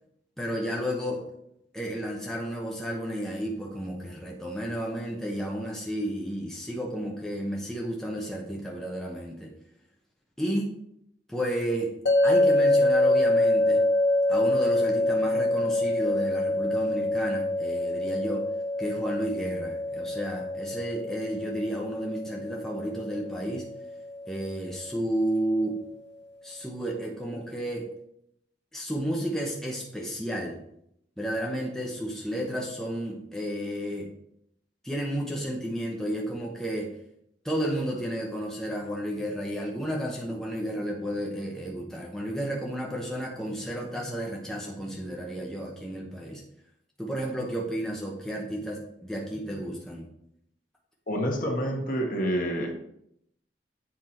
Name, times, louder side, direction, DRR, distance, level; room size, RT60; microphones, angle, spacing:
voice 1, 0.4-1.2 1.7-9.5 10.4-10.7 11.3-11.9 12.2-13.9 14.3-18.5 18.8-23.6 24.3-25.8 26.4-27.9 28.7-30.6 31.2-34.1 34.8-36.9 37.4-46.4 47.0-50.1, equal, 5° left, -2 dB, 0.8 m, -32 dB
sound 1, 12.1-25.2, left 1 dB, 75° left, 0.7 m, -26 dB
voice 2, 51.1-52.7, equal, 50° left, 0 dB, 1.5 m, -28 dB
7.6 x 4.7 x 4.4 m, 0.76 s
head